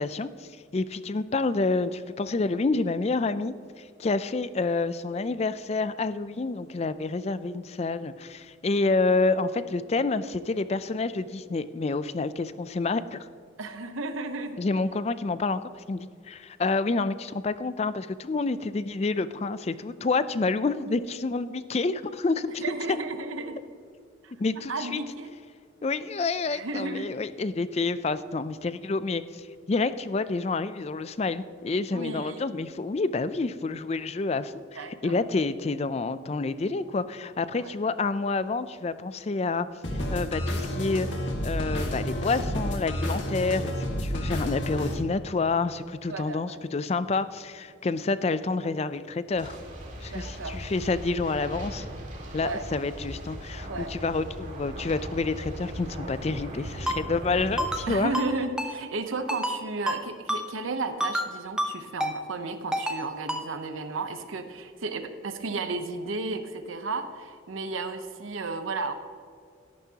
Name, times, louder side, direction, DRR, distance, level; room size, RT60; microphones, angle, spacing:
voice 1, 0.0-13.3 14.6-15.6 15.9-22.6 24.4-25.0 25.8-34.5 35.0-39.7 40.1-43.7 44.0-49.6 50.0-51.9 52.3-58.1, left 3 dB, 30° left, 14 dB, 0.4 m, -28 dB
voice 2, 13.6-14.6 22.6-23.6 24.2-25.3 26.5-27.1 31.9-32.5 34.7-35.2 37.5-37.7 46.1-46.6 50.1-50.6 52.4-52.6 53.7-53.9 57.9-68.9, right 3 dB, 90° right, 8 dB, 0.8 m, -33 dB
sound 1, 39.8-44.9, equal, 65° left, 1.7 m, -30 dB
sound 2, 49.3-57.9, right 1 dB, 40° right, 2.0 m, -39 dB
Ringtone, 56.9-57.0 57.6-57.9 58.1-58.3 58.6-58.7 59.3-59.6 59.9-60.0 60.3-60.4 61.0-61.3 61.6-61.7 62.0-62.1 62.7-63.0 63.3-63.4, equal, 5° right, 0.8 m, -28 dB
13.0 x 11.5 x 2.9 m, 2.3 s
head